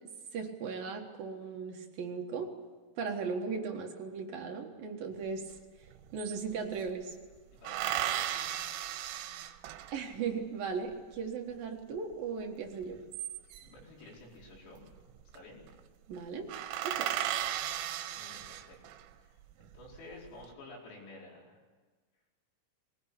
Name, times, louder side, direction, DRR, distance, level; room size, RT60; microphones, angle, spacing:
voice 1, 0.3-2.5 3.0-5.5 6.1-7.1 9.9-13.0 16.1-16.5 16.8-17.1, right 5 dB, 60° right, 2 dB, 2.7 m, -37 dB
sound 1, 5.5-5.6 5.8-6.9 7.7-10.2 12.8-13.8 15.0-15.4 15.7-15.8 16.1-16.2 16.5-19.1 19.6-20.3, right 12 dB, 80° right, 3.5 m, -36 dB
voice 2, 7.6-8.5 13.6-14.8 15.3-15.6 18.1-18.8 19.2-19.3 19.6-21.6, left 2 dB, 90° left, -3 dB, 7.6 m, -51 dB
21.0 x 19.0 x 9.9 m, 1.4 s
omnidirectional pair, 5.9 m